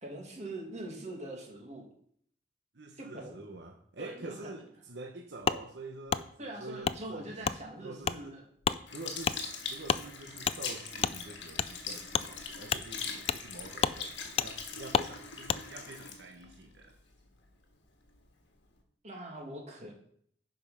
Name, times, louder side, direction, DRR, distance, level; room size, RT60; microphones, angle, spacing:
voice 1, 0.0-1.9 3.0-3.4 4.0-4.5 6.4-8.4 19.0-19.9, right 1 dB, 40° right, 0 dB, 2.0 m, -43 dB
voice 2, 2.7-7.3 7.8-8.4 8.9-16.9, right 2 dB, 70° right, 2 dB, 1.0 m, -47 dB
Wood, 5.5-5.6 6.1-6.2 6.8-7.0 7.4-7.6 8.0-8.2 8.6-8.8 9.2-9.4 9.9-10.0 10.5-10.6 11.0-11.2 11.6-11.7 12.1-12.3 12.7-12.8 13.3-13.4 13.8-14.0 14.4-14.5 14.9-15.1 15.5-15.6, left 6 dB, 35° left, 0.3 m, -29 dB
Sink (filling or washing) / Liquid, 8.9-17.5 18.1-18.2, left 5 dB, 75° left, 1.5 m, -42 dB
9.4 x 5.3 x 5.5 m, 0.64 s
head